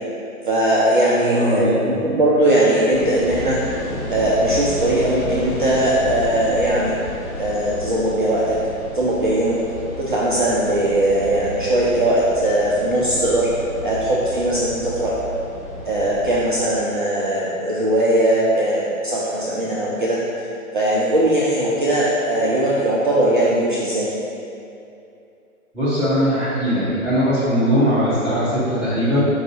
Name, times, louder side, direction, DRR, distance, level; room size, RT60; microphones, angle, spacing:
voice 1, 0.5-3.6 4.1-6.9 7.4-8.6 8.9-9.6 10.1-13.5 13.8-15.1 15.9-20.2 20.7-24.1, right 1 dB, 40° right, -7 dB, 0.4 m, -19 dB
voice 2, 1.1-1.8 25.7-29.2, equal, 5° right, -14 dB, 0.7 m, -20 dB
sound 1, 2.9-16.6, left 1 dB, 50° left, 1.1 m, -32 dB
4.6 x 2.5 x 4.2 m, 2.7 s
figure-of-eight pair, 125°, 43 cm